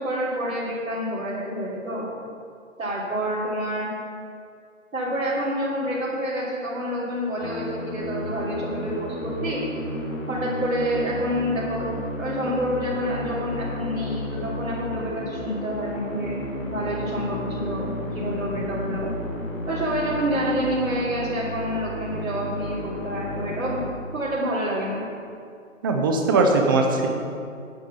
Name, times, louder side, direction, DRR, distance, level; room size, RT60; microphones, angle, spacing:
voice 1, 0.0-2.1 2.8-3.9 4.9-9.6 10.3-16.4 16.7-19.1 19.7-23.8 24.1-25.0, equal, 85° right, -9 dB, 3.1 m, -28 dB
Musical instrument, 7.4-24.5, left 1 dB, 80° left, 2.7 m, -32 dB
voice 2, 25.8-27.1, right 3 dB, 15° right, 2 dB, 0.7 m, -20 dB
9.4 x 7.3 x 6.9 m, 2.4 s
hypercardioid pair, 155°, 40 cm